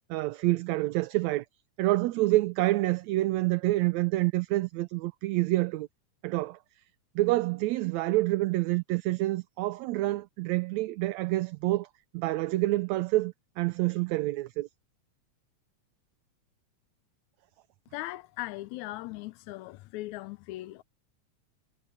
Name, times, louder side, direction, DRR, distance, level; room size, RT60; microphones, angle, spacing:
voice 1, 0.1-1.5 1.8-5.9 6.2-6.6 7.2-11.9 12.1-14.7, right 18 dB, 75° right, 1.9 m, -27 dB
voice 2, 17.9-20.8, left 18 dB, 80° left, 1.9 m, -39 dB
omnidirectional pair, 3.4 m